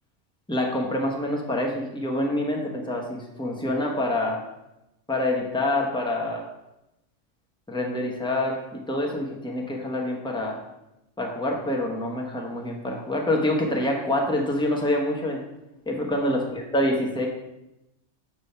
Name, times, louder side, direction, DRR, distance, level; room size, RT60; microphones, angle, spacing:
voice 1, 0.5-4.4 5.1-6.4 7.7-10.6 11.2-15.4 15.9-16.4 16.7-17.3, left 1 dB, 5° left, -1 dB, 0.8 m, -26 dB
7.0 x 3.5 x 5.5 m, 0.92 s
omnidirectional pair, 1.3 m